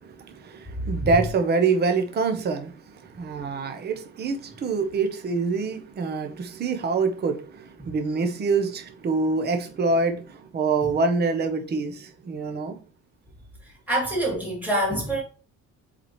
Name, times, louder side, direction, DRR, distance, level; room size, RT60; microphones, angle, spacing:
voice 1, 0.0-2.7 3.0-12.8, right 4 dB, 35° right, 0.9 m, -25 dB
voice 2, 13.9-15.2, right 1 dB, 5° right, 3.0 m, -25 dB
7.5 x 4.2 x 3.1 m
cardioid pair, 160°, 30 cm